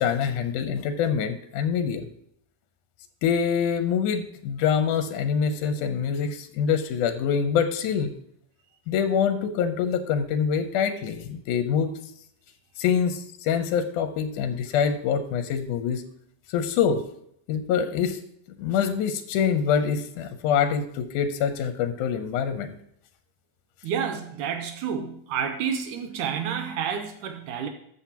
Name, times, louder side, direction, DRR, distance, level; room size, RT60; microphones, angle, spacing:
voice 1, 0.0-2.1 3.2-8.1 8.9-11.9 12.8-16.0 16.5-17.0 17.5-18.2 18.6-22.7, left 7 dB, 85° left, 9 dB, 2.3 m, -25 dB
voice 2, 23.8-27.7, right 7 dB, 85° right, 6 dB, 2.2 m, -29 dB
13.0 x 7.7 x 2.9 m, 0.71 s
omnidirectional pair, 3.5 m